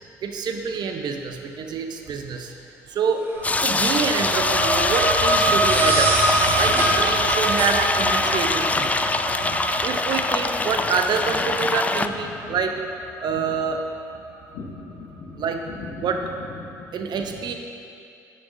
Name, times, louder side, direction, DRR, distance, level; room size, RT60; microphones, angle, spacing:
voice 1, 0.2-2.5 2.9-3.2 3.6-6.1 6.6-8.9 9.8-12.7 13.2-13.8 15.4-15.6 16.0-16.2 16.9-17.5, right 5 dB, 55° right, 5 dB, 0.7 m, -26 dB
sound 1, 3.3-4.0 5.5-7.0 7.5-7.7, right 1 dB, 25° right, 1.4 m, -27 dB
sound 2, 3.3-14.5, right 2 dB, 85° right, 1.5 m, -26 dB
sound 3, 3.4-12.1, left 3 dB, 15° left, 0.3 m, -23 dB
voice 2, 5.4-6.0 6.3-7.6 8.7-8.9 9.4-9.6 10.8-11.7 11.9-12.6 13.3-13.4 14.5-17.0 17.3-17.4, left 4 dB, 75° left, -3 dB, 1.0 m, -40 dB
10.0 x 6.1 x 2.6 m, 2.6 s
hypercardioid pair, 55°, 9 cm